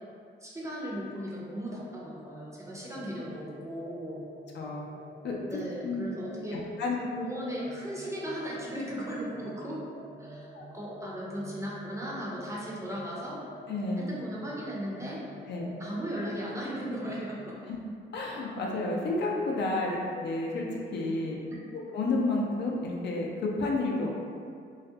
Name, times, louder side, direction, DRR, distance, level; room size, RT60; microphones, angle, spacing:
voice 1, 0.4-4.2 5.5-6.6 6.9-9.8 10.2-13.4 14.0-15.2 15.8-17.5 19.9-20.0, equal, 15° right, -5 dB, 0.5 m, -37 dB
sound 1, 1.7-17.5, right 1 dB, 60° right, 0.8 m, -48 dB
voice 2, 13.7-14.1 15.5-15.7 17.7-17.8 18.1-21.4 21.9-24.1, left 2 dB, 60° left, -2 dB, 0.5 m, -30 dB
2.3 x 2.1 x 2.7 m, 2.3 s
cardioid pair, 90°, 20 cm